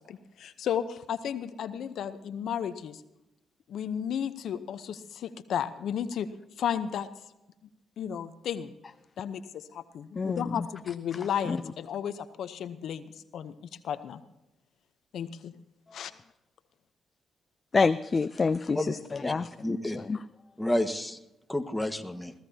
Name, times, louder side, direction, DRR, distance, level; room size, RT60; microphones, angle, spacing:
voice 1, 0.0-3.0 3.7-6.3 6.6-7.1 8.0-8.7 9.2-13.0 13.3-13.5 13.8-14.2 15.1-15.5 15.9-16.1, left 8 dB, 70° left, 12 dB, 0.8 m, -33 dB
voice 2, 10.2-10.7 11.5-11.6 17.7-20.2, left 4 dB, 40° left, 13 dB, 0.4 m, -28 dB
voice 3, 19.6-20.0 20.6-21.2 21.5-22.3, left 1 dB, 5° left, 6 dB, 1.5 m, -30 dB
21.0 x 15.5 x 2.8 m, 0.93 s
supercardioid pair, 65°, 0 cm